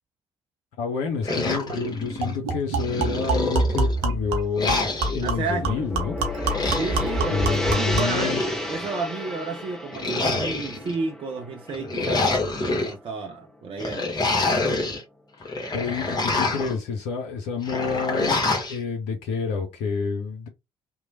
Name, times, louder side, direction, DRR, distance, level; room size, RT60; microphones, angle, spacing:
voice 1, 0.8-6.2 7.3-8.4 15.7-20.5, left 5 dB, 65° left, 0.6 m, -29 dB
sound 1, 1.2-2.4 2.8-4.0 4.6-5.3 6.3-7.1 7.9-8.9 9.9-10.9 11.7-12.9 13.8-15.0 15.4-16.8 17.6-18.8, left 3 dB, 30° left, 1.1 m, -27 dB
sound 2, 1.3-1.4 1.7-1.8 2.2-8.2, right 2 dB, 75° right, 0.7 m, -27 dB
Gong, 5.1-13.4, left 1 dB, 5° left, 0.8 m, -33 dB
voice 2, 5.2-5.9 6.7-8.4 8.7-12.3 12.6-14.4, right 4 dB, 40° right, 0.5 m, -32 dB
3.0 x 2.1 x 2.6 m
figure-of-eight pair, 45°, 14 cm